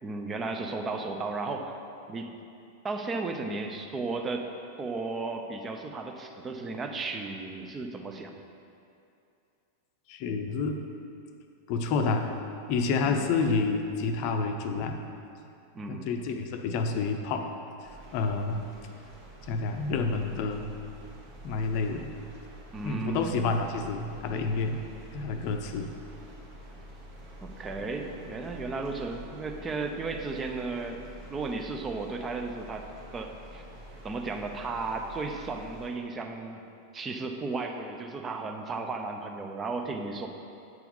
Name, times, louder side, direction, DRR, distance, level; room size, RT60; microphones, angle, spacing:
voice 1, 0.0-1.7 2.1-2.3 2.8-4.5 4.8-8.4 13.0-13.2 15.7-16.1 22.7-23.4 27.4-31.0 31.3-32.9 33.1-33.6 34.0-36.6 36.9-40.3, right 3 dB, 20° right, 4 dB, 0.7 m, -34 dB
voice 2, 10.1-10.8 11.7-12.3 12.7-15.0 15.9-17.5 18.1-18.7 19.5-20.7 21.4-22.1 22.8-24.8 25.1-25.9, left 4 dB, 45° left, 5 dB, 0.6 m, -29 dB
sound 1, 17.8-35.9, right 1 dB, 45° right, 1.7 m, -47 dB
8.1 x 4.6 x 5.4 m, 2.6 s
figure-of-eight pair, 90°, 0 cm